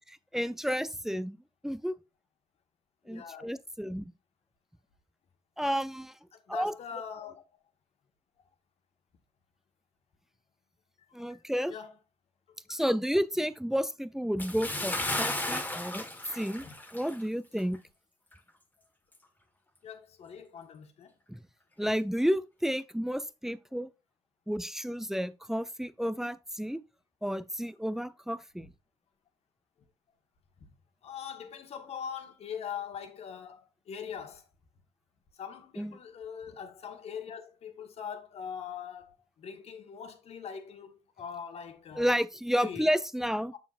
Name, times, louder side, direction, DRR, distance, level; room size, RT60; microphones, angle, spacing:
voice 1, 0.3-1.4 1.6-2.0 3.1-4.1 5.6-6.1 6.5-6.7 11.1-11.7 12.7-16.0 16.3-16.6 16.9-17.8 21.3-21.4 21.8-23.9 24.5-26.8 27.2-28.7 35.8-36.0 42.0-43.5, equal, 5° right, 0.6 m, -31 dB
voice 2, 3.1-3.5 6.3-7.4 11.0-11.9 12.7-12.8 16.6-16.7 19.8-21.1 30.6-30.7 31.0-34.5 35.4-42.1 42.6-42.9 43.5-43.6, left 7 dB, 55° left, 1.5 m, -42 dB
Bathtub (filling or washing) / Splash splatter, 14.4-17.3 17.6-17.8 18.3-18.4, left 1 dB, 15° left, 1.5 m, -34 dB
7.0 x 7.0 x 2.5 m
hypercardioid pair, 50°, 13 cm